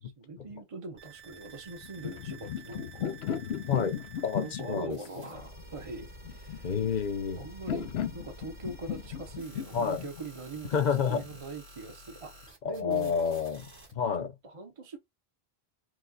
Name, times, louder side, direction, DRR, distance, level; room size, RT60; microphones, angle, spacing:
voice 1, 0.0-3.1 4.3-6.7 7.4-10.7 11.1-13.4 14.2-15.0, right 3 dB, 35° right, 0.7 m, -42 dB
sound 1, 1.0-13.9, right 1 dB, 90° right, 2.1 m, -50 dB
sound 2, 1.7-11.4, left 9 dB, 85° left, 0.9 m, -37 dB
voice 2, 4.2-5.0 6.6-7.4 9.7-10.0 10.7-11.2 12.6-13.7 13.9-14.3, left 6 dB, 50° left, 0.7 m, -29 dB
4.8 x 2.2 x 3.9 m
omnidirectional pair, 1.1 m